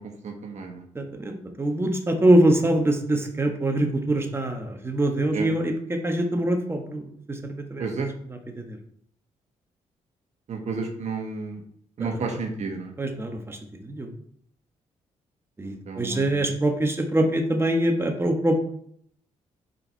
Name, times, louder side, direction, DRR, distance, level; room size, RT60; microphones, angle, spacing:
voice 1, 0.0-0.8 5.3-5.5 7.8-8.1 10.5-11.6 12.0-12.9 15.6-16.5, right 4 dB, 60° right, 3 dB, 1.2 m, -32 dB
voice 2, 0.9-7.9 8.3-8.8 12.0-12.2 13.0-14.1 15.6-18.6, right 1 dB, 20° right, 3 dB, 1.2 m, -24 dB
5.3 x 4.5 x 4.5 m, 0.64 s
supercardioid pair, 60°, 13 cm